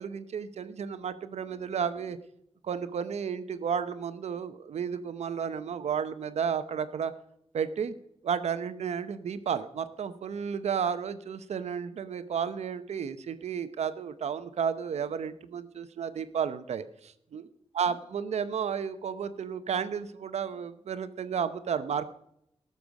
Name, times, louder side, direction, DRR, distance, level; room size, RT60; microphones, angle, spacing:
voice 1, 0.0-2.2 2.6-7.1 7.5-7.9 8.2-17.5 17.7-22.1, right 7 dB, 90° right, 12 dB, 0.9 m, -32 dB
17.5 x 6.9 x 5.2 m, 0.73 s
wide cardioid pair, 160°, 11 cm